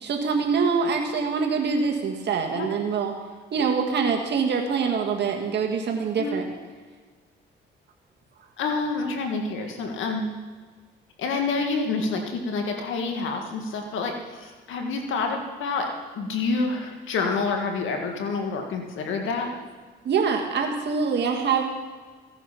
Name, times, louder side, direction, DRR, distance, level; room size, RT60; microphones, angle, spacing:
voice 1, 0.0-3.2 3.5-6.5 20.1-21.6, right 5 dB, 60° right, 2 dB, 1.7 m, -24 dB
voice 2, 8.6-10.2 11.2-15.9 16.2-19.6, left 4 dB, 80° left, 3 dB, 1.9 m, -28 dB
16.0 x 9.9 x 5.9 m, 1.4 s
cardioid pair, 90°, 20 cm